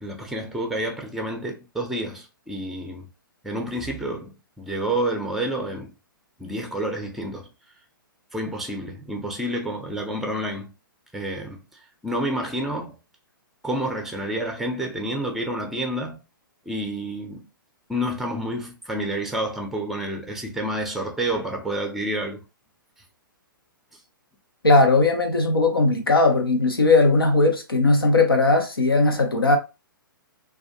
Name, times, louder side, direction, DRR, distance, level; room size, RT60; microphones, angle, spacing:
voice 1, 0.0-3.1 3.4-5.9 6.4-7.5 8.3-10.7 11.1-11.6 12.0-12.9 13.6-16.2 16.7-17.5 17.9-22.4, right 1 dB, ahead, 0.5 m, -29 dB
voice 2, 24.6-29.6, left 2 dB, 90° left, 0.7 m, -18 dB
2.4 x 2.3 x 2.7 m
figure-of-eight pair, 120°, 12 cm